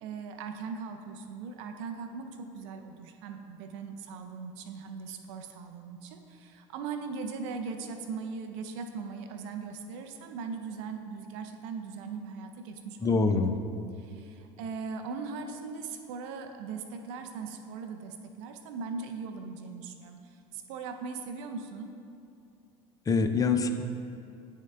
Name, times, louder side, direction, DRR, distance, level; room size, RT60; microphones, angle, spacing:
voice 1, 0.0-13.5 13.9-21.9, right 5 dB, 75° right, 6 dB, 0.5 m, -39 dB
voice 2, 13.0-13.5 23.1-23.8, left 4 dB, 20° left, 7 dB, 0.5 m, -25 dB
9.2 x 3.7 x 3.3 m, 2.5 s
hypercardioid pair, 90°, 16 cm